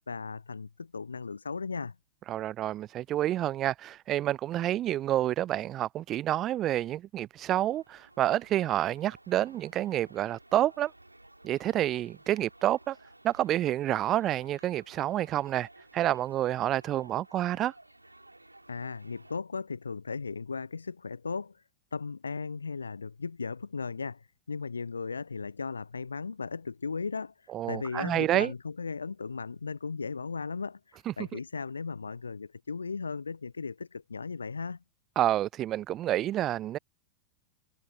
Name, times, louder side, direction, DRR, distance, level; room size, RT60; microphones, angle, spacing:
voice 1, 0.1-2.0 18.7-21.6 21.9-34.8, left 4 dB, 75° left, 0.4 m, -36 dB
voice 2, 2.3-10.9 11.4-13.0 13.2-17.7 27.5-28.5 31.1-31.4 35.2-36.8, right 13 dB, 30° right, 0.4 m, -29 dB
sound 1, 7.5-19.4, right 2 dB, 85° right, 3.3 m, -56 dB
figure-of-eight pair, 90°, 0 cm